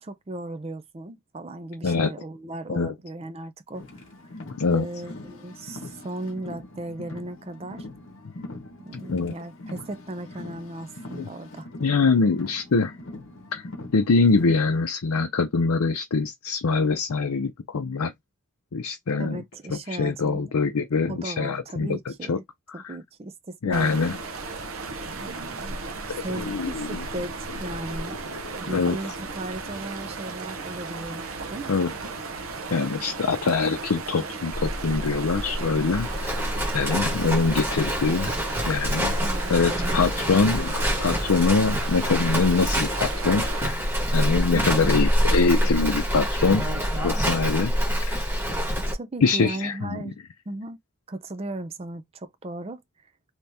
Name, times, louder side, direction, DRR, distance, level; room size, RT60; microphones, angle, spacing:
voice 1, 0.0-4.0 4.7-7.9 8.8-11.7 19.2-20.5 21.1-22.4 22.7-24.0 25.1-25.8 26.1-28.1 28.5-31.7 39.2-40.4 44.5-45.0 48.9-50.2 50.5-50.8 51.1-52.8, right 2 dB, 25° right, 0.4 m, -36 dB
Car, 3.7-14.8, left 2 dB, 60° left, 0.9 m, -42 dB
voice 2, 11.8-12.9 13.5-13.6 13.9-18.1 18.7-19.4 19.7-22.0 22.3-22.4 22.8-23.0 23.6-24.2 26.1-27.0 28.5-29.0 31.7-31.9 32.7-36.4 36.7-38.3 38.7-39.2 39.5-43.8 44.1-46.7 47.0-47.7 48.1-48.2 49.2-50.0, left 4 dB, 80° left, 0.5 m, -24 dB
sound 1, 23.7-43.7, right 3 dB, 70° right, 0.7 m, -35 dB
Livestock farm animals working animals, 34.5-48.9, equal, 10° right, 1.1 m, -26 dB
2.9 x 2.8 x 3.4 m
head